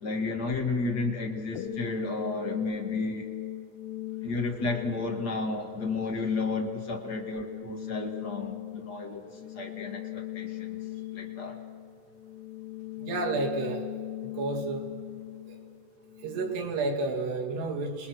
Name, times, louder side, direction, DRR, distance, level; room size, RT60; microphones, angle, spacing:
voice 1, 0.0-3.3 4.2-10.8 11.1-11.6, left 3 dB, 50° left, 2 dB, 1.2 m, -32 dB
sound 1, 1.6-16.6, left 12 dB, 80° left, 2.9 m, -39 dB
voice 2, 13.0-13.9 14.3-14.8 15.5-15.6 16.2-18.1, right 3 dB, 70° right, 1 dB, 4.3 m, -31 dB
28.5 x 20.0 x 6.2 m, 2.1 s
omnidirectional pair, 4.9 m